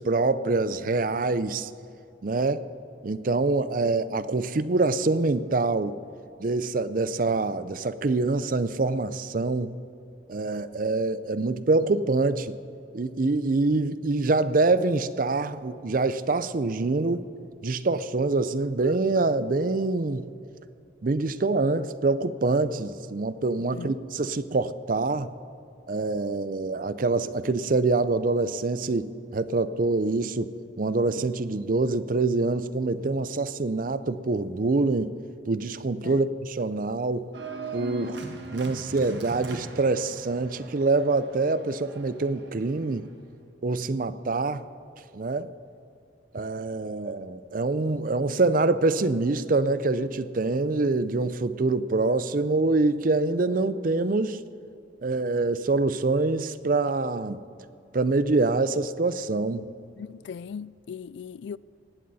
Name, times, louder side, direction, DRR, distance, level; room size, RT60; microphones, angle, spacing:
voice 1, 0.0-1.7 2.2-2.6 3.0-6.0 6.4-9.8 10.3-12.6 12.9-17.2 17.6-20.2 21.0-25.3 25.9-35.1 35.5-37.3 37.7-38.2 38.5-43.1 43.6-44.6 45.1-45.5 46.3-54.4 55.0-57.4 57.9-59.7, right 3 dB, 45° right, 0.5 m, -25 dB
Organ, 37.3-43.0, right 2 dB, 65° right, 1.5 m, -40 dB
voice 2, 60.0-61.6, left 6 dB, 70° left, 0.3 m, -38 dB
19.0 x 15.5 x 4.2 m
head